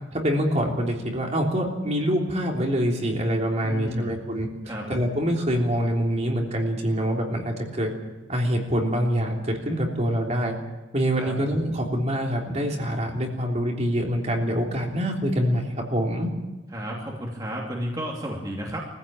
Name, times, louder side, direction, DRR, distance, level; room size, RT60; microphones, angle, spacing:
voice 1, 0.1-4.5 4.9-7.9 8.3-10.5 10.9-16.3, equal, 35° right, 0 dB, 3.4 m, -25 dB
voice 2, 3.6-4.1 4.6-4.9 11.2-11.4 16.7-18.8, equal, 20° right, -2 dB, 2.8 m, -32 dB
23.5 x 15.5 x 8.8 m, 1.2 s
head